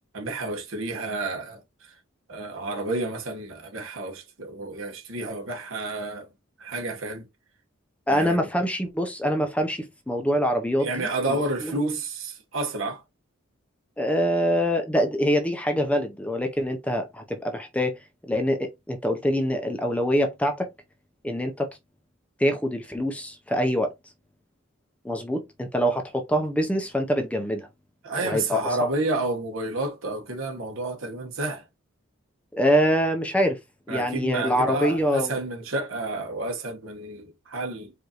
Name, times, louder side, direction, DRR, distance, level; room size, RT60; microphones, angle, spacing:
voice 1, 0.1-1.9 2.3-6.3 6.6-7.3 8.1-8.5 10.8-13.0 28.0-31.6 33.9-37.9, right 2 dB, 75° right, 1.2 m, -30 dB
voice 2, 8.1-11.4 11.6-11.8 14.0-18.0 18.3-20.7 21.2-21.7 22.4-23.9 25.0-27.7 28.2-28.6 32.5-33.6 33.9-35.4, equal, 5° left, 0.5 m, -25 dB
4.8 x 2.6 x 2.9 m
head